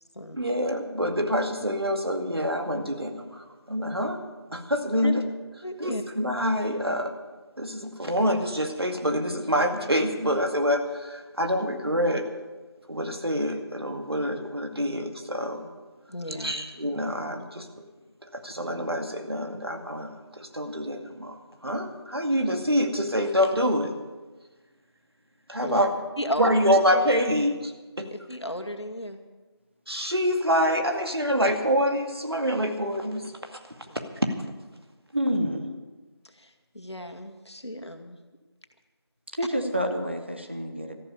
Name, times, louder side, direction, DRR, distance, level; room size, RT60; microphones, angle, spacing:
voice 1, 0.3-4.2 4.5-5.2 5.8-7.1 7.6-12.2 12.9-15.6 16.4-17.8 18.3-21.4 21.6-23.9 25.5-25.9 26.4-27.7 28.0-28.1 29.9-33.3, equal, 65° right, 4 dB, 2.2 m, -26 dB
voice 2, 5.6-6.0 16.1-16.6 25.6-25.8 26.2-26.6 26.9-27.1 28.3-29.2 33.9-34.0 36.4-38.2, equal, 80° left, 6 dB, 2.1 m, -34 dB
voice 3, 35.1-35.7 39.4-40.9, equal, 25° right, 4 dB, 1.0 m, -28 dB
14.0 x 12.0 x 6.9 m, 1.3 s
figure-of-eight pair, 170°, 14 cm